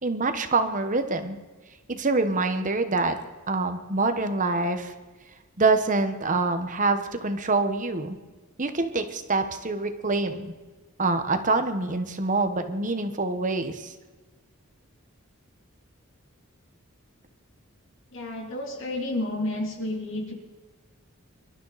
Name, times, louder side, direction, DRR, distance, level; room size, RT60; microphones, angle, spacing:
voice 1, 0.0-1.4 1.9-3.2 3.5-4.9 5.6-8.2 8.6-10.5 11.0-13.9, right 3 dB, 35° right, 8 dB, 1.3 m, -25 dB
voice 2, 18.1-20.3, left 1 dB, 60° left, 1 dB, 3.3 m, -31 dB
26.0 x 12.5 x 4.2 m, 1.3 s
head